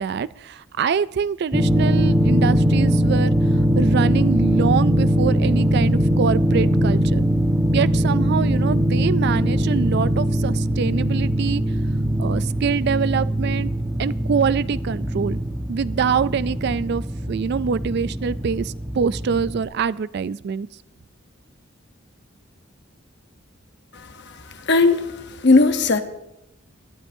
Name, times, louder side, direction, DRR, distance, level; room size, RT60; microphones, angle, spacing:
voice 1, 0.0-3.3 3.8-11.6 12.2-13.7 14.0-15.4 15.7-20.7, right 6 dB, 55° right, 0.3 m, -24 dB
sound 1, 1.5-19.6, equal, 10° right, 1.2 m, -21 dB
voice 2, 24.7-26.0, left 3 dB, 55° left, 1.0 m, -17 dB
21.0 x 12.5 x 2.7 m
head